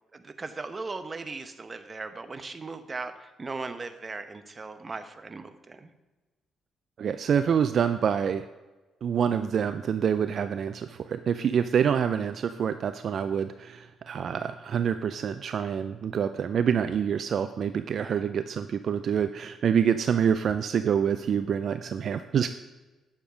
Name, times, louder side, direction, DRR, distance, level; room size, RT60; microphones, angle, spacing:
voice 1, 0.1-5.9 18.0-18.2, right 3 dB, 30° right, 10 dB, 0.9 m, -38 dB
voice 2, 7.0-8.5 9.0-22.6, right 7 dB, 60° right, 11 dB, 0.4 m, -26 dB
9.5 x 7.1 x 5.1 m, 1.2 s
cardioid pair, 90°, 0 cm